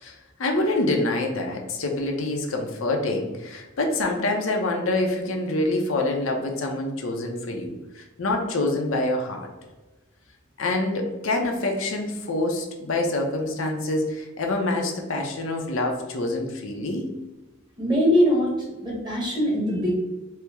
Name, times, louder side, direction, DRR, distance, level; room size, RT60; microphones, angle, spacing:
voice 1, 0.0-9.5 10.6-17.1, left 2 dB, 65° left, 2 dB, 0.6 m, -26 dB
voice 2, 17.8-18.5 18.8-19.9, equal, 20° right, -4 dB, 1.0 m, -21 dB
4.4 x 2.0 x 3.4 m, 1.1 s
head